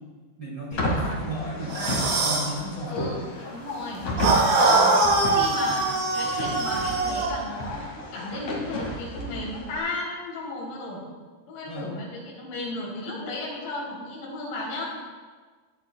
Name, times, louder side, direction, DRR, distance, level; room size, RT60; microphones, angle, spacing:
voice 1, 0.4-3.2 4.7-5.2 5.7-5.8 11.7-11.9, equal, 30° right, -7 dB, 2.4 m, -35 dB
sound 1, 0.7-9.8, equal, 45° left, 2.7 m, -32 dB
sound 2, 1.7-2.5 4.2-7.3, right 2 dB, 70° right, 4.6 m, -22 dB
voice 2, 2.9-3.2 3.5-4.1 4.5-4.9 5.1-5.9 6.1-11.0 11.5-14.9, left 2 dB, 75° left, -4 dB, 5.9 m, -34 dB
19.0 x 12.0 x 2.3 m, 1.4 s
omnidirectional pair, 5.9 m